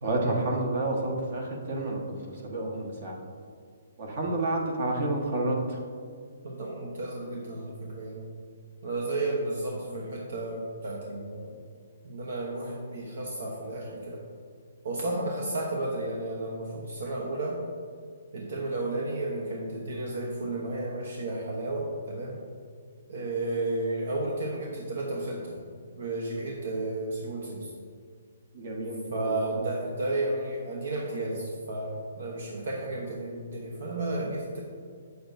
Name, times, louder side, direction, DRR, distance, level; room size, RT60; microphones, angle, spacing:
voice 1, 0.0-2.2 2.4-3.1 4.0-5.8 28.5-29.5, right 2 dB, 45° right, 0 dB, 1.3 m, -29 dB
voice 2, 6.4-8.3 8.8-11.6 12.0-14.3 14.8-17.6 18.3-22.4 23.1-25.6 26.0-27.7 29.1-34.6, right 2 dB, 65° right, -1 dB, 0.9 m, -32 dB
7.9 x 6.7 x 2.6 m, 2.2 s
hypercardioid pair, 165°, 0 cm